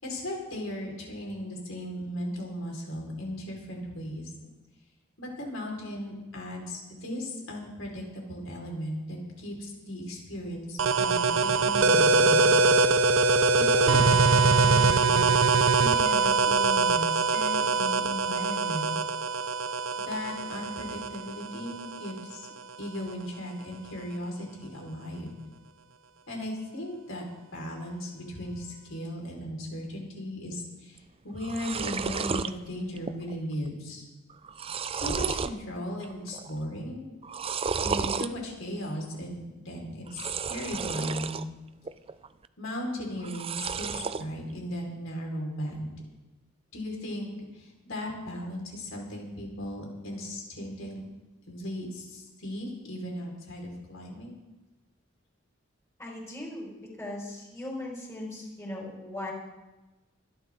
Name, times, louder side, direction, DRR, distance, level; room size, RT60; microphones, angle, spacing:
voice 1, 0.0-4.3 5.2-12.5 13.6-15.3 15.8-18.9 20.0-22.5 22.8-25.4 26.3-27.2 27.5-34.0 34.9-37.0 37.8-39.4 39.6-41.4 42.6-45.9 46.7-51.0 51.5-54.4, equal, 85° left, -1 dB, 5.0 m, -37 dB
sound 1, 10.8-22.2, right 4 dB, 75° right, 0.6 m, -23 dB
sound 2, 31.0-31.1 31.3-32.5 33.0-33.4 33.6-33.7 34.3-35.6 36.0-36.5 37.2-38.3 40.1-41.4 41.8-42.5 43.2-44.2, right 5 dB, 30° right, 0.5 m, -32 dB
voice 2, 56.0-56.7 57.0-59.3, left 1 dB, 15° left, -4 dB, 5.6 m, -38 dB
25.5 x 11.5 x 3.9 m, 1.1 s
head